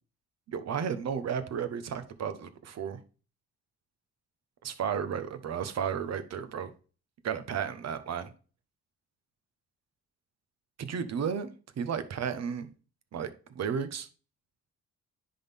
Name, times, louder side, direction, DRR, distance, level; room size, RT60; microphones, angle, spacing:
voice 1, 0.5-3.0 4.6-6.7 7.2-8.3 10.8-11.5 11.8-12.7 13.1-14.1, right 7 dB, 60° right, 11 dB, 1.2 m, -33 dB
10.0 x 3.9 x 3.6 m, 0.36 s
cardioid pair, 90°, 30 cm